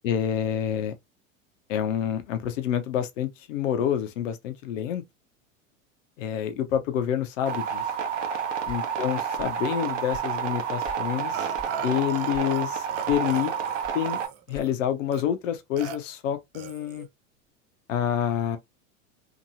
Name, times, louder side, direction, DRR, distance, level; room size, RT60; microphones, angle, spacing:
voice 1, 0.0-0.9 1.7-5.0 6.2-7.8 8.7-11.4 11.8-13.5 13.9-14.2 14.5-17.1 17.9-18.6, left 10 dB, 75° left, 0.7 m, -28 dB
sound 1, 7.5-14.3, right 7 dB, 70° right, 0.9 m, -29 dB
sound 2, 8.6-9.7 9.9-11.1 11.5-11.8 12.3-12.7 13.1-15.0, left 2 dB, 10° left, 0.8 m, -45 dB
Burping eructation, 11.3-12.6 12.9-14.7 15.1-15.2 15.8-16.0 16.5-17.1, right 7 dB, 40° right, 0.6 m, -40 dB
2.9 x 2.6 x 2.6 m
hypercardioid pair, 90°, 39 cm